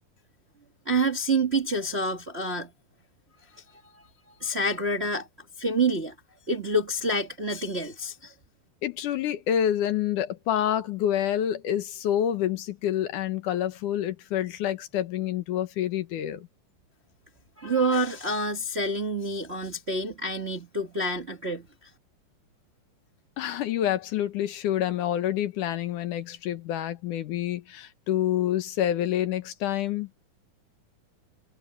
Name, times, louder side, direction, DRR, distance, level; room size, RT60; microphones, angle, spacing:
voice 1, 0.8-2.7 3.5-3.6 4.4-5.3 5.6-6.1 6.5-8.3 17.6-21.9, right 2 dB, 45° right, 0.7 m, -27 dB
voice 2, 8.8-16.5 23.4-30.1, left 11 dB, 65° left, 2.4 m, -27 dB
omnidirectional pair, 4.2 m